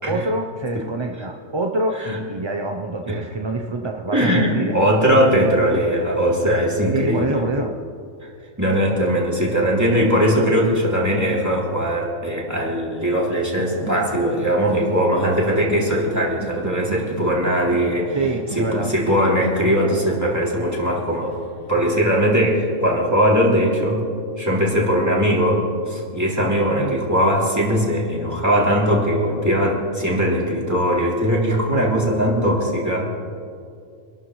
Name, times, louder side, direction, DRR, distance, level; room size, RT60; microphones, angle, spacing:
voice 1, 0.1-5.9 6.9-7.8 18.1-18.9 26.8-27.0, right 2 dB, 30° right, 2 dB, 0.5 m, -26 dB
voice 2, 4.1-7.4 8.6-18.2 18.5-21.3 21.7-24.1 24.4-33.1, equal, 10° right, -4 dB, 2.9 m, -20 dB
sound 1, 13.5-22.4, right 2 dB, 70° left, 5.1 m, -35 dB
26.0 x 13.0 x 3.2 m, 2.4 s
omnidirectional pair, 1.4 m